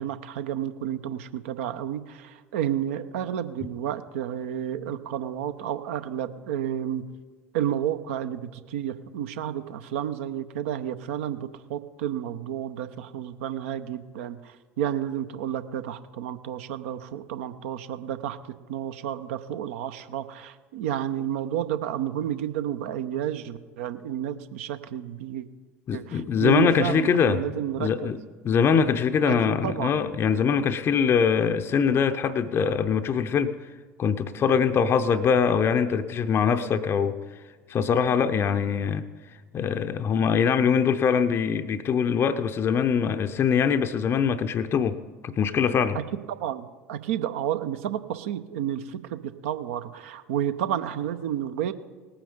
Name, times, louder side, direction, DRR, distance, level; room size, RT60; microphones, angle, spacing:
voice 1, 0.0-7.0 7.5-18.4 18.7-25.5 25.9-28.1 29.3-29.4 29.6-30.0 45.9-46.0 46.3-51.7, right 10 dB, 60° right, 11 dB, 0.7 m, -31 dB
voice 2, 25.9-27.4 27.8-28.2 28.4-33.6 34.0-37.2 37.7-39.1 39.5-45.0 45.2-46.0, left 6 dB, 30° left, 9 dB, 0.6 m, -23 dB
18.5 x 8.9 x 5.2 m, 1.4 s
figure-of-eight pair, 70°, 8 cm